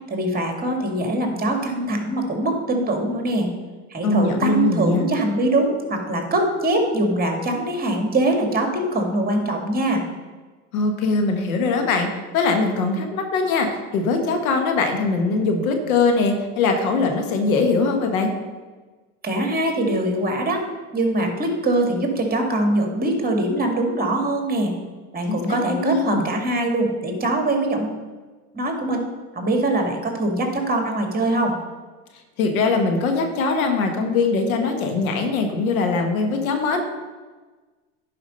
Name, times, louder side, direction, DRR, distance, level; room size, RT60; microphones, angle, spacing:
voice 1, 0.1-3.5 3.9-10.0 19.2-20.6 20.9-24.7 25.1-28.0 28.5-29.0 29.3-31.6, right 1 dB, 20° right, 3 dB, 2.1 m, -22 dB
voice 2, 4.0-5.1 10.7-12.1 12.3-18.3 25.3-26.3 32.4-36.8, left 3 dB, 85° left, 4 dB, 1.5 m, -21 dB
10.5 x 5.1 x 5.4 m, 1.3 s
supercardioid pair, 90°, 41 cm